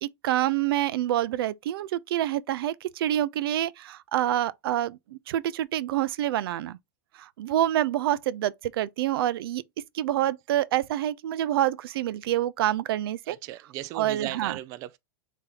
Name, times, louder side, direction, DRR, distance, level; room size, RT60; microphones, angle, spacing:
voice 1, 0.0-6.8 7.2-9.6 9.9-13.4 13.9-14.6, right 12 dB, 80° right, 0.5 m, -27 dB
voice 2, 13.3-15.0, right 14 dB, 25° right, 0.3 m, -37 dB
4.1 x 3.4 x 3.7 m
supercardioid pair, 175°, 12 cm